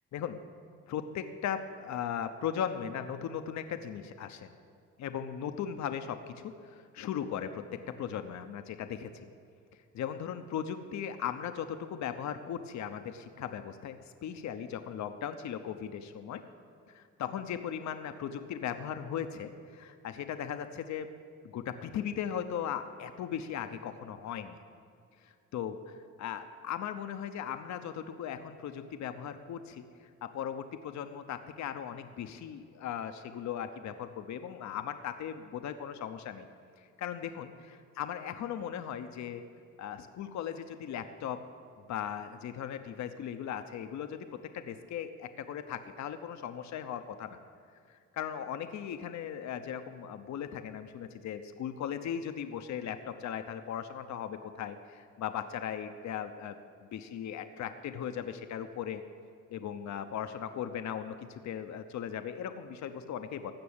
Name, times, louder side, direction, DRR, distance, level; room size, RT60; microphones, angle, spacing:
voice 1, 0.9-4.5 5.0-7.6 8.0-9.3 9.9-16.4 16.9-21.1 21.4-24.6 25.2-36.5 36.8-39.4 39.8-41.4 41.9-47.4 47.9-56.6 56.9-59.0 59.5-63.5, left 9 dB, 65° left, 8 dB, 0.8 m, -38 dB
16.0 x 6.1 x 9.7 m, 2.4 s
cardioid pair, 90°, 30 cm